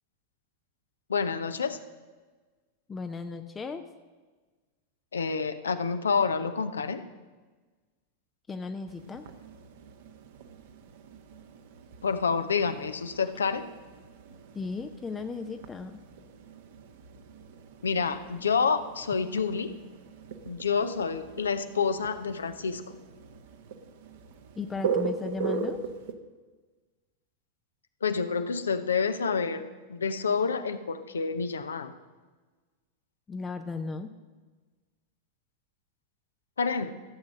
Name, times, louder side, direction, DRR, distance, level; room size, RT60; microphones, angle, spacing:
voice 1, 1.1-1.8 5.1-7.0 12.0-13.6 17.8-19.7 20.4-22.8 28.0-29.6 29.9-31.9 36.6-36.9, left 5 dB, 70° left, 11 dB, 0.7 m, -28 dB
voice 2, 2.9-3.8 8.5-9.3 14.5-16.0 24.6-25.8 33.3-34.1, left 4 dB, 15° left, 7 dB, 0.6 m, -36 dB
sound 1, 8.9-26.1, right 5 dB, 55° right, 1.1 m, -39 dB
14.5 x 7.6 x 6.1 m, 1.3 s
figure-of-eight pair, 90°, 0 cm